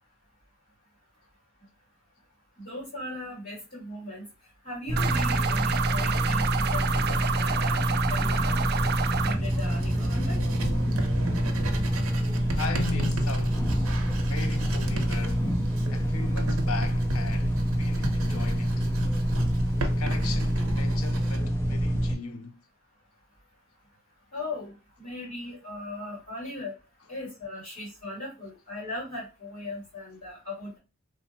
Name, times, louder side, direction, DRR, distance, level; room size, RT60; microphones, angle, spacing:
voice 1, 2.6-4.3 4.6-8.6 9.2-10.4 24.3-26.7 27.1-30.8, left 1 dB, 40° left, 2.0 m, -38 dB
sound 1, 4.9-22.2, equal, 10° left, 0.5 m, -26 dB
sound 2, 5.0-9.4, right 7 dB, 50° right, 0.3 m, -29 dB
Writing, 9.4-21.4, right 2 dB, 80° right, 0.7 m, -36 dB
voice 2, 12.1-13.6 14.3-15.6 15.9-18.9 19.8-22.6, left 5 dB, 85° left, 0.5 m, -38 dB
3.1 x 2.0 x 4.1 m
head